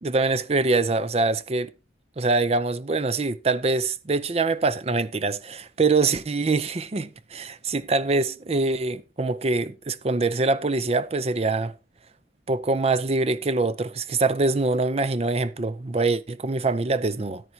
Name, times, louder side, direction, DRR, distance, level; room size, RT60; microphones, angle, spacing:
voice 1, 0.0-1.7 2.2-11.7 12.5-17.4, right 3 dB, 35° right, 0.5 m, -24 dB
13.5 x 9.4 x 2.8 m
head